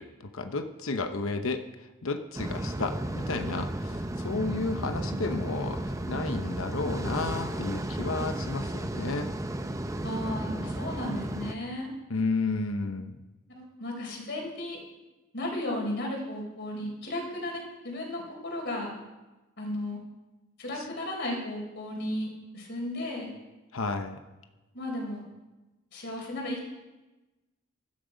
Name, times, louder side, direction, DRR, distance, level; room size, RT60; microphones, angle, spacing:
voice 1, 0.0-5.8 6.1-9.3 12.1-13.2 20.8-20.9 23.7-24.2, left 3 dB, 70° left, 7 dB, 0.9 m, -32 dB
sound 1, 2.3-11.5, right 1 dB, 15° right, 0.7 m, -33 dB
voice 2, 10.0-11.9 13.5-14.8 15.3-18.9 19.6-20.0 20.6-23.3 24.7-25.2 25.9-26.7, left 1 dB, 55° left, -1 dB, 4.5 m, -34 dB
16.5 x 13.0 x 5.2 m, 1.1 s
head